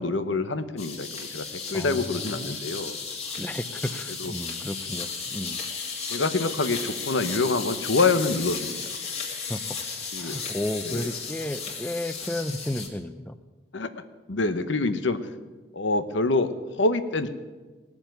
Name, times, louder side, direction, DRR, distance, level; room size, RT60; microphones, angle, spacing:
voice 1, 0.0-3.0 4.2-4.3 6.1-8.8 10.1-10.4 10.8-11.1 13.7-13.9 14.3-15.2 15.7-17.3, left 3 dB, 85° left, 11 dB, 1.0 m, -26 dB
sound 1, 0.8-12.9, left 5 dB, 35° left, 2.1 m, -34 dB
voice 2, 1.7-2.6 3.4-5.6 9.3-9.8 10.2-13.4, left 1 dB, 10° left, 10 dB, 0.4 m, -33 dB
18.5 x 7.2 x 9.2 m, 1.3 s
head